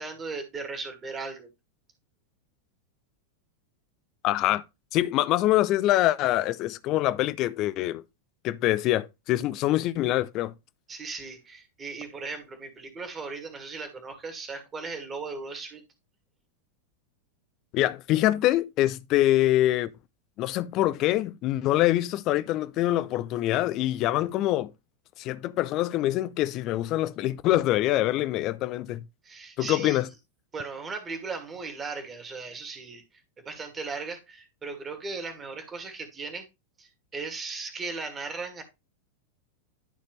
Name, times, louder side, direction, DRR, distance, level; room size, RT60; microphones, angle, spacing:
voice 1, 0.0-1.5 10.9-15.8 29.2-30.0 30.5-33.0 33.4-36.5 36.8-38.6, right 4 dB, 20° right, 2.2 m, -37 dB
voice 2, 4.2-4.6 4.9-8.0 8.4-10.5 17.7-19.9 20.4-24.7 25.2-29.0 29.6-30.1, left 15 dB, 40° left, 0.5 m, -25 dB
12.0 x 4.2 x 3.1 m
figure-of-eight pair, 90°, 0 cm